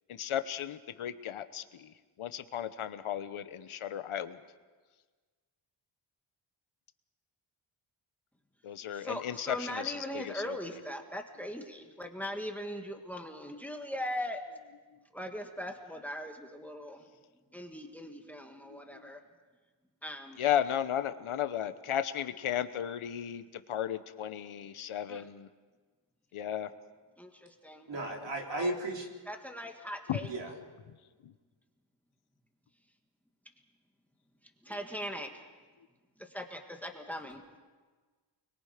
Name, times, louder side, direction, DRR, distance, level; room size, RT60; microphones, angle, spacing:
voice 1, 0.1-1.9 2.2-4.4 8.6-10.5 18.7-18.8 20.4-23.4 23.7-25.5 26.3-26.7 27.9-28.3 30.1-30.2, left 10 dB, 80° left, 11 dB, 1.1 m, -34 dB
voice 2, 8.9-14.4 15.1-17.1 17.5-19.2 20.0-20.4 25.1-25.3 27.2-27.9 28.5-28.7 29.2-30.3 34.6-35.4 36.2-37.6, equal, 5° left, 4 dB, 1.7 m, -40 dB
voice 3, 27.9-29.1 30.3-30.5, right 1 dB, 60° right, 0 dB, 3.8 m, -34 dB
29.0 x 22.0 x 5.1 m, 1.4 s
wide cardioid pair, 155°, 49 cm